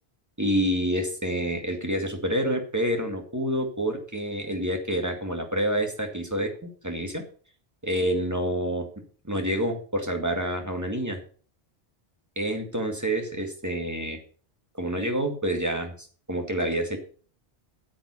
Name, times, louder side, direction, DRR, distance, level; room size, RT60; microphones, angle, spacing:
voice 1, 0.4-7.2 7.8-8.9 9.2-11.2 12.4-14.2 14.8-17.0, equal, 15° right, 3 dB, 2.0 m, -28 dB
9.3 x 7.6 x 5.6 m, 0.43 s
omnidirectional pair, 1.1 m